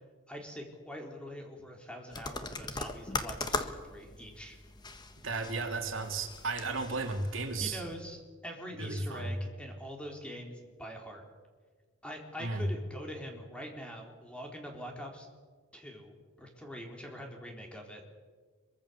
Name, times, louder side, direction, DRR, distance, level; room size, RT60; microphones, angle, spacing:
voice 1, 0.3-4.6 7.6-11.2 12.0-15.3 15.7-18.1, equal, 5° left, 1 dB, 4.0 m, -44 dB
sound 1, 2.1-8.0, left 3 dB, 20° left, 1.5 m, -40 dB
voice 2, 5.2-7.8 8.8-9.4 12.4-12.7, right 3 dB, 75° right, 4 dB, 2.9 m, -34 dB
25.0 x 23.5 x 7.1 m, 1.5 s
head